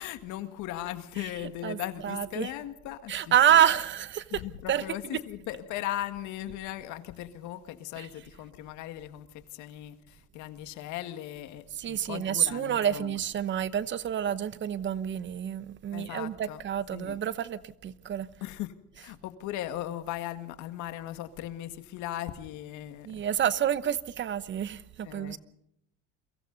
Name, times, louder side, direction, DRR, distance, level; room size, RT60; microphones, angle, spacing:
voice 1, 0.0-3.6 4.3-13.2 15.9-16.6 16.9-17.2 18.4-23.2 25.0-25.4, left 13 dB, 75° left, 1.9 m, -38 dB
voice 2, 1.6-2.5 3.1-4.4 4.7-5.2 8.0-8.1 11.7-18.3 23.0-25.4, right 10 dB, 40° right, 1.0 m, -28 dB
30.0 x 23.5 x 4.0 m
cardioid pair, 150°, 29 cm